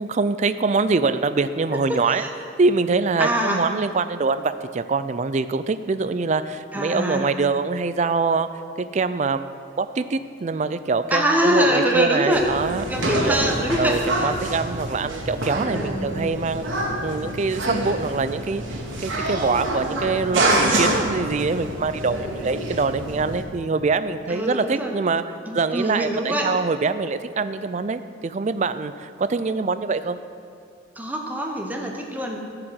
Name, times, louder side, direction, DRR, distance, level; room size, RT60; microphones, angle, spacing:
voice 1, 0.0-2.2 2.6-8.5 8.8-9.5 9.8-13.4 13.8-18.6 19.0-25.2 25.5-30.2, right 4 dB, 35° right, 12 dB, 0.4 m, -24 dB
voice 2, 1.7-2.3 3.2-3.6 6.7-7.3 11.1-12.5 12.9-14.3 15.7-16.2 24.3-24.9 25.5-26.5 31.0-32.4, equal, 10° right, 1 dB, 0.9 m, -24 dB
sound 1, 12.3-23.4, right 1 dB, 75° right, 1.6 m, -26 dB
14.5 x 5.0 x 7.6 m, 2.3 s
head